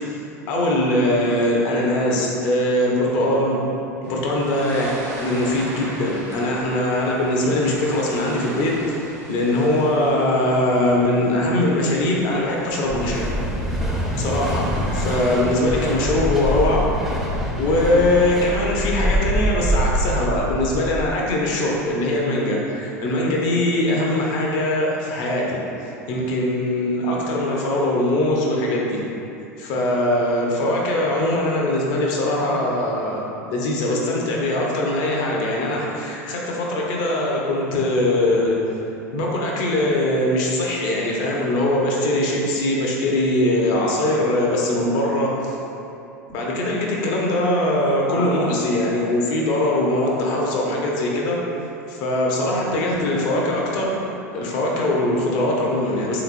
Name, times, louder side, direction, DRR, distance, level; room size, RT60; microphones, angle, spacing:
voice 1, 0.5-3.6 4.0-4.9 5.2-9.0 9.3-13.4 14.2-16.9 17.6-25.6 26.1-29.0 29.6-38.6 39.1-45.5 46.3-51.4 51.9-54.0 54.3-56.2, left 1 dB, 55° left, -2 dB, 0.7 m, -21 dB
sound 1, 4.0-18.3, right 1 dB, 55° right, 0.8 m, -40 dB
sound 2, 12.9-21.2, equal, 5° right, 0.5 m, -24 dB
3.5 x 2.9 x 2.5 m, 2.7 s
hypercardioid pair, 85°, 9 cm